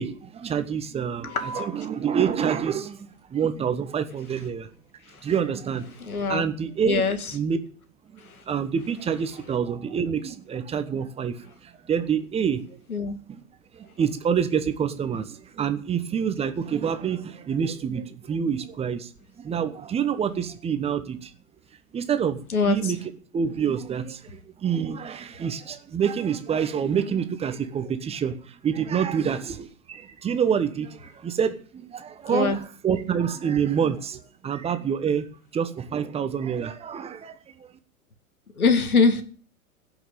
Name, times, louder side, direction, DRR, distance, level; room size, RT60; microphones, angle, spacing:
voice 1, 0.0-4.7 5.2-5.9 6.3-7.0 7.3-7.6 8.1-12.8 13.3-13.4 13.7-19.1 19.4-21.3 21.9-23.0 23.3-35.3 35.5-37.7, right 7 dB, 15° right, 9 dB, 1.1 m, -27 dB
sound 1, 1.3-8.3, equal, 35° left, 6.5 m, -47 dB
voice 2, 6.1-6.4 6.8-7.2 12.9-13.2 22.5-22.9 32.3-32.6 38.6-39.2, left 4 dB, 70° left, 9 dB, 2.4 m, -22 dB
16.5 x 6.1 x 8.9 m, 0.43 s
figure-of-eight pair, 110°, 44 cm